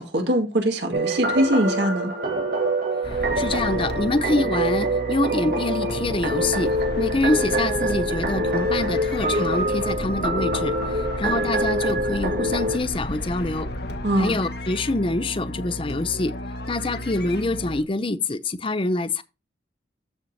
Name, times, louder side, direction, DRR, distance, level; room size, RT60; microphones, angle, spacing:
voice 1, 0.0-2.1 14.0-14.3, right 1 dB, 75° right, 1.9 m, -22 dB
sound 1, 0.9-12.8, right 1 dB, 55° right, 1.7 m, -25 dB
sound 2, 3.0-17.8, left 1 dB, 65° left, 1.6 m, -33 dB
voice 2, 3.4-6.7 7.0-13.7 14.2-16.3 16.7-19.2, left 2 dB, 30° left, 0.7 m, -25 dB
14.0 x 4.9 x 2.7 m
head